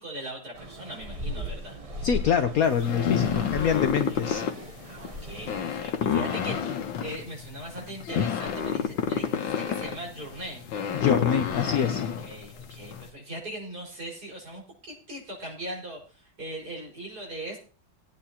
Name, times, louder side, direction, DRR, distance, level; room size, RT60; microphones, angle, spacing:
voice 1, 0.0-1.8 3.3-4.2 4.8-10.7 12.0-17.6, right 1 dB, 55° right, -3 dB, 5.6 m, -40 dB
sound 1, 0.6-5.6, left 1 dB, 30° right, 0.6 m, -38 dB
voice 2, 2.0-4.5 10.9-12.0, left 7 dB, 60° left, 7 dB, 1.1 m, -25 dB
sound 2, 2.6-13.1, left 8 dB, 90° left, 1.8 m, -29 dB
21.0 x 9.0 x 2.9 m, 0.38 s
omnidirectional pair, 2.0 m